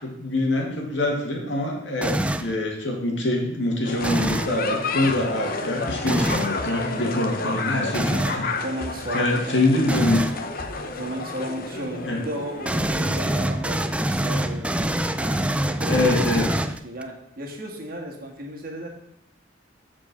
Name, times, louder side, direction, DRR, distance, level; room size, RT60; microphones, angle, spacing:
voice 1, 0.0-8.5 9.1-10.2 12.0-12.2 15.9-16.5, left 1 dB, 75° left, 0 dB, 2.0 m, -24 dB
sound 1, 2.0-2.6 4.0-4.6 6.1-6.5 7.9-8.4 9.9-10.4 12.6-17.0, right 1 dB, 5° right, 0.3 m, -25 dB
sound 2, 3.8-13.1, left 3 dB, 50° left, 0.8 m, -31 dB
voice 2, 8.6-9.8 10.8-14.9 15.2-18.9, right 1 dB, 50° right, 0 dB, 1.7 m, -35 dB
7.5 x 4.7 x 6.7 m, 0.74 s
head